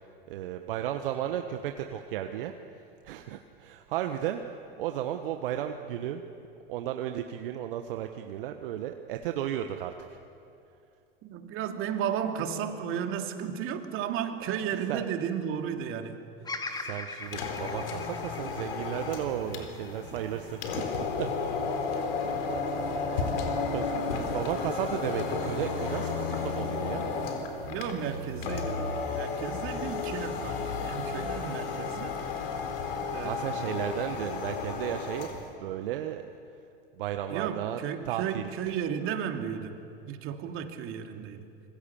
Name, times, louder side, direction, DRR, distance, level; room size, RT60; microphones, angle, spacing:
voice 1, 0.3-2.5 3.0-6.2 6.7-10.2 14.7-15.1 16.7-21.3 23.7-23.9 24.3-27.1 33.2-35.3 35.6-36.3 37.0-37.8 38.0-38.5, right 11 dB, 65° right, 6 dB, 1.3 m, -34 dB
voice 2, 11.2-16.2 23.9-24.3 27.6-32.2 33.1-33.8 37.3-41.4, right 8 dB, 45° right, 5 dB, 2.7 m, -34 dB
Bird vocalization bird call bird song, 16.4-20.7 21.2-22.0, left 3 dB, 15° left, 2.7 m, -41 dB
sound 1, 17.2-35.5, left 4 dB, 70° left, 3.9 m, -33 dB
26.0 x 25.0 x 7.1 m, 2.6 s
hypercardioid pair, 85°, 29 cm